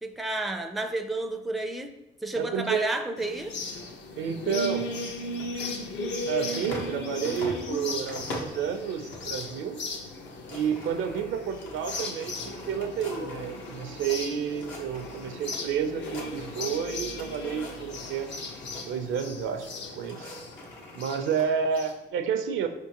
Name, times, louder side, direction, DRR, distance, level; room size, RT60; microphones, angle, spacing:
voice 1, 0.0-3.5, right 2 dB, ahead, 6 dB, 0.4 m, -31 dB
voice 2, 2.4-2.9 4.2-4.9 6.3-9.8 10.5-18.3 18.8-20.3 20.9-22.7, right 7 dB, 80° right, 8 dB, 0.5 m, -30 dB
sound 1, 3.2-21.9, left 2 dB, 65° left, 0.7 m, -37 dB
sound 2, 5.3-7.0 7.2-8.6 9.1-9.5 9.8-9.9 10.2-14.2 14.5-15.6 15.9-16.8 17.1-18.8 19.6-21.5, left 1 dB, 80° left, 1.1 m, -42 dB
5.1 x 3.6 x 2.9 m, 1.0 s
cardioid pair, 90°, 20 cm